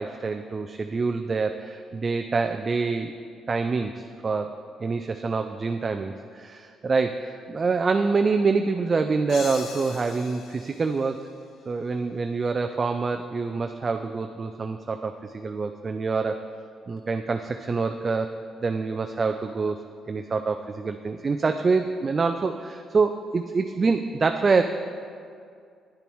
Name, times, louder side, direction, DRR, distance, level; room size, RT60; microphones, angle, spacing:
voice 1, 0.0-3.1 3.5-11.3 11.7-16.4 16.9-18.4 18.6-19.8 20.1-24.6, right 4 dB, 35° right, 6 dB, 0.3 m, -26 dB
sound 1, 9.3-12.0, left 5 dB, 70° left, 0.7 m, -41 dB
10.0 x 6.8 x 3.1 m, 2.3 s
cardioid pair, 90°, 0 cm